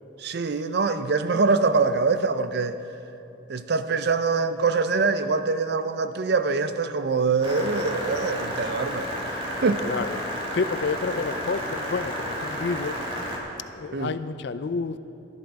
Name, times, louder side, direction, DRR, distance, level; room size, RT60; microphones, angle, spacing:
voice 1, 0.2-2.8 3.5-9.9 13.9-14.2, right 4 dB, 60° right, 11 dB, 0.5 m, -24 dB
sound 1, 7.4-13.4, equal, 30° right, 1.7 m, -32 dB
voice 2, 9.8-10.2 10.5-13.0 13.7-15.0, left 4 dB, 60° left, 13 dB, 0.4 m, -29 dB
13.0 x 11.5 x 4.7 m, 2.9 s
head